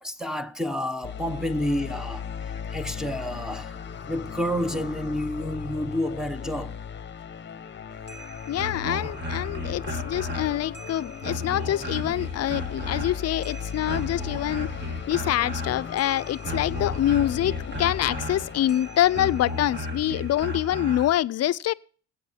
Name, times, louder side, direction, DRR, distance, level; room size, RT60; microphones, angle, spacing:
voice 1, 0.0-2.3 2.7-6.8, equal, ahead, 0.9 m, -30 dB
sound 1, 1.0-20.5, left 7 dB, 35° left, 0.8 m, -37 dB
sound 2, 7.9-21.2, left 2 dB, 35° right, 2.0 m, -34 dB
voice 2, 8.5-14.7 15.1-21.7, left 12 dB, 55° left, 0.5 m, -25 dB
22.5 x 8.4 x 2.8 m
cardioid pair, 90°, 30 cm